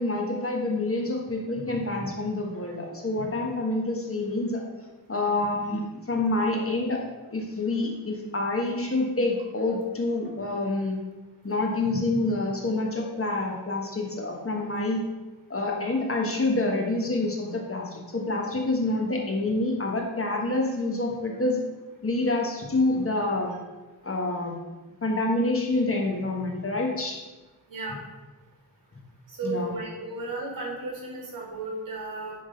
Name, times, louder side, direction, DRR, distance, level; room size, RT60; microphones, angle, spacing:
voice 1, 0.0-4.6 5.1-7.0 7.3-11.0 11.4-15.0 15.5-21.6 22.0-23.6 24.0-24.6 25.0-27.2 29.4-29.7, left 2 dB, 40° left, 0 dB, 1.3 m, -27 dB
voice 2, 27.7-28.0 29.3-32.3, right 2 dB, 65° right, -3 dB, 2.6 m, -34 dB
10.5 x 3.8 x 5.1 m, 1.2 s
wide cardioid pair, 125°, 36 cm